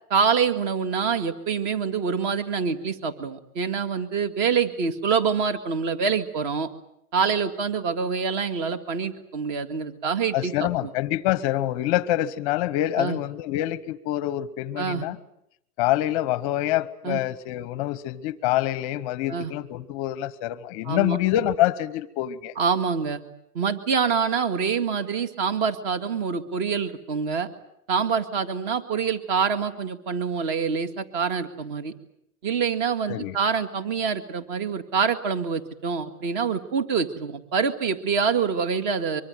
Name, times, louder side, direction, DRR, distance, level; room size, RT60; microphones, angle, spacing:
voice 1, 0.1-6.7 7.1-10.5 10.8-10.9 13.0-13.2 14.8-15.0 17.0-17.2 19.3-19.5 20.9-21.2 22.6-23.2 23.5-27.5 27.9-31.9 32.4-39.2, right 6 dB, 30° right, 10 dB, 2.1 m, -26 dB
voice 2, 10.3-15.2 15.8-22.5 33.1-33.4, left 14 dB, 25° left, 17 dB, 1.0 m, -26 dB
24.5 x 24.0 x 9.1 m, 0.76 s
hypercardioid pair, 155°, 45 cm